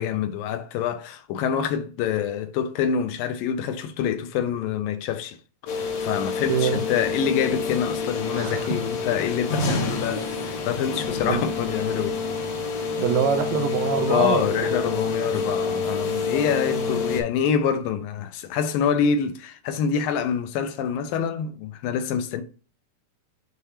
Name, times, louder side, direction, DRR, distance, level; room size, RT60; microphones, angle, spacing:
voice 1, 0.0-5.4 5.7-12.2 14.1-22.4, left 8 dB, 75° left, 2.3 m, -26 dB
sound 1, 5.7-17.2, left 4 dB, 60° left, 1.9 m, -28 dB
voice 2, 6.5-6.8 8.3-8.8 11.3-11.5 13.0-14.8 16.7-17.0, right 8 dB, 75° right, 2.3 m, -25 dB
6.7 x 2.8 x 4.9 m
omnidirectional pair, 4.4 m